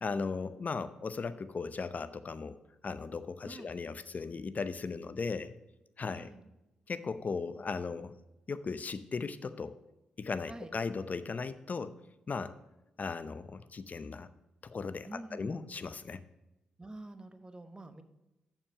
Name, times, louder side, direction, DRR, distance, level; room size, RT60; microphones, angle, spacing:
voice 1, 0.0-2.6 2.8-5.5 6.0-6.3 6.9-8.1 8.5-9.7 10.2-11.9 12.3-12.6 13.0-14.3 14.6-16.2, left 4 dB, 45° left, 13 dB, 0.7 m, -37 dB
voice 2, 6.1-6.4 10.5-10.7 15.1-15.6 16.8-18.0, right 2 dB, 20° right, 9 dB, 1.1 m, -47 dB
6.9 x 5.8 x 7.0 m, 0.95 s
hypercardioid pair, 40°, 4 cm